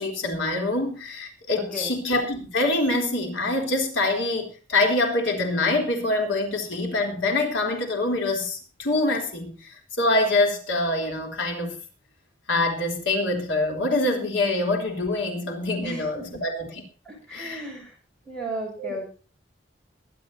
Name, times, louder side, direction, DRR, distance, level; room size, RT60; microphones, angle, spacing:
voice 1, 0.0-9.7 10.0-11.8 12.5-16.8 17.3-17.6 18.8-19.0, left 2 dB, 85° left, 2 dB, 3.6 m, -25 dB
voice 2, 1.6-1.9 15.8-16.4 17.1-17.9 18.3-19.1, right 1 dB, 5° left, -1 dB, 6.4 m, -35 dB
21.5 x 11.5 x 2.8 m, 0.37 s
head